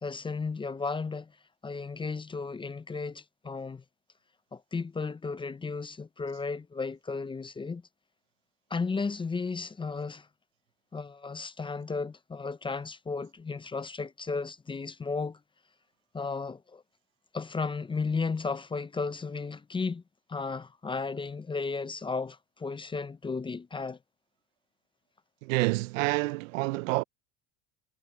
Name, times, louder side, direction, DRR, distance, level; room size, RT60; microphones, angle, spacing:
voice 1, 0.0-1.3 1.6-3.8 4.5-7.8 8.7-10.3 10.9-15.4 16.1-16.8 17.3-20.0 20.3-24.0, left 4 dB, 15° left, 0.6 m, -34 dB
voice 2, 25.4-27.0, right 22 dB, 85° right, 0.6 m, -28 dB
supercardioid pair, 105°, 38 cm